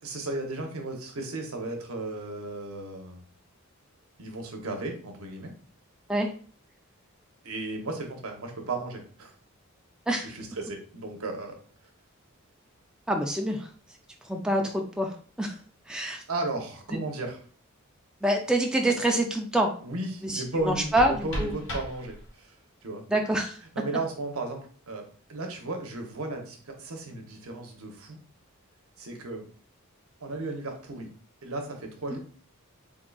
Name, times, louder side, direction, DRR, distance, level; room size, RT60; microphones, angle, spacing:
voice 1, 0.0-3.2 4.2-5.5 7.4-9.3 10.2-11.6 16.3-17.4 19.8-22.5 22.8-23.0 23.7-25.0 25.3-28.2 29.0-29.5 30.2-31.1 31.4-32.2, right 2 dB, 80° right, 3 dB, 0.9 m, -35 dB
voice 2, 13.1-13.7 14.3-15.6 15.9-16.2 18.2-19.7 20.2-21.5 23.1-23.6, right 1 dB, 5° right, 1 dB, 0.3 m, -26 dB
sound 1, 20.5-22.5, equal, 60° left, 1.1 m, -37 dB
3.7 x 3.5 x 2.3 m, 0.43 s
head